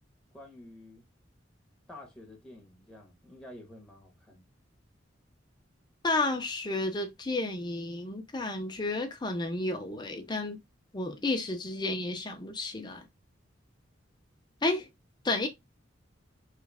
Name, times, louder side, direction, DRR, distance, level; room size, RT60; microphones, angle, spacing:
voice 1, 0.3-1.0 1.9-4.4, left 1 dB, 5° left, 1.0 m, -50 dB
voice 2, 6.0-10.6 10.9-13.1 14.6-14.9 15.2-15.5, left 2 dB, 25° left, 0.6 m, -31 dB
3.2 x 2.4 x 3.2 m
head